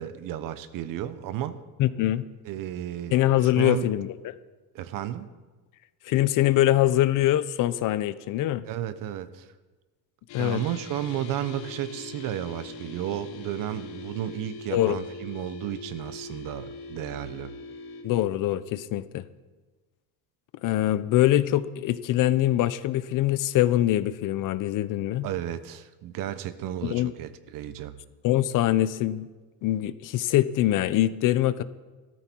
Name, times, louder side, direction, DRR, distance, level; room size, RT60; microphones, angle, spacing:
voice 1, 0.0-1.6 2.4-3.2 3.4-3.9 4.7-5.3 8.6-9.5 10.4-17.5 25.2-28.0, right 11 dB, 60° right, 12 dB, 1.1 m, -33 dB
voice 2, 1.8-2.3 3.1-4.2 6.1-8.7 10.3-10.6 14.7-15.0 18.0-19.2 20.6-25.3 26.8-27.1 28.2-29.3 29.6-31.6, left 14 dB, 55° left, 15 dB, 0.8 m, -23 dB
sound 1, 10.3-18.0, left 3 dB, 85° left, 3.6 m, -41 dB
17.0 x 14.0 x 4.6 m, 1.3 s
cardioid pair, 135°, 38 cm